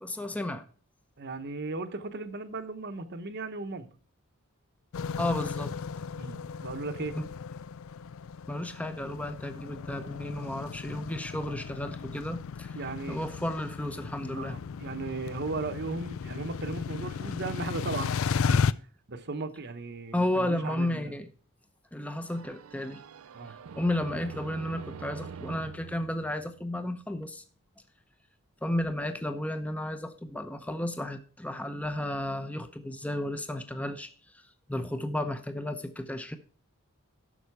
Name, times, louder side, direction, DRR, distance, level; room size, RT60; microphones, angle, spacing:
voice 1, 0.0-0.6 5.2-5.7 7.1-7.3 8.5-12.8 13.1-14.6 20.1-21.3 21.9-23.0 23.5-27.4 28.6-34.1 34.7-36.4, left 1 dB, 5° left, 0.7 m, -33 dB
voice 2, 1.2-3.9 6.2-7.2 12.7-13.2 14.4-18.6 19.1-21.1 23.3-23.5, right 3 dB, 50° right, 1.0 m, -36 dB
sound 1, 4.9-18.7, left 6 dB, 65° left, 0.4 m, -34 dB
sound 2, 22.3-27.0, right 6 dB, 70° right, 0.4 m, -45 dB
11.5 x 6.5 x 4.7 m
head